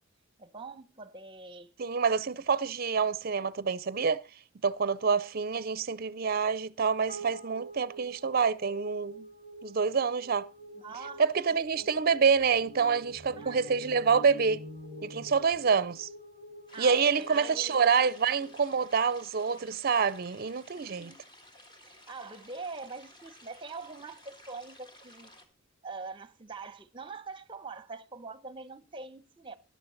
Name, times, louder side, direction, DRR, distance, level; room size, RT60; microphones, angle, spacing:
voice 1, 0.4-1.7 10.7-11.2 11.7-11.9 13.4-13.7 16.7-17.8 20.8-21.3 21.8-25.3 25.8-29.6, right 4 dB, 25° right, 0.8 m, -44 dB
voice 2, 1.8-4.2 4.6-9.3 9.6-10.5 11.2-14.6 15.0-16.1 16.8-21.1, right 5 dB, 50° right, 0.5 m, -27 dB
sound 1, 7.1-19.6, right 1 dB, 40° left, 5.5 m, -48 dB
sound 2, 10.6-10.7 11.0-16.0, right 1 dB, 70° left, 3.2 m, -48 dB
sound 3, 16.7-25.5, left 1 dB, 20° left, 1.7 m, -55 dB
13.0 x 11.0 x 3.9 m
head